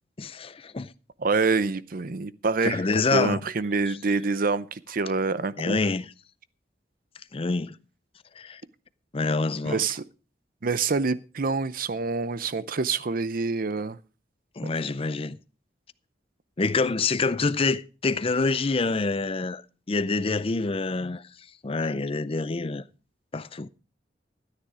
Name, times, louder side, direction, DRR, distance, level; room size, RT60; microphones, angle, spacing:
voice 1, 0.2-0.9 2.6-3.4 3.9-4.0 5.6-6.1 7.3-7.8 8.4-8.6 9.1-9.8 14.6-15.4 16.6-19.6 19.9-21.2 21.6-22.9 23.3-23.7, left 3 dB, 30° left, 0.5 m, -26 dB
voice 2, 1.2-2.8 3.1-5.8 9.6-10.0 10.6-14.0, right 4 dB, 50° right, 0.6 m, -26 dB
13.0 x 9.6 x 4.9 m
head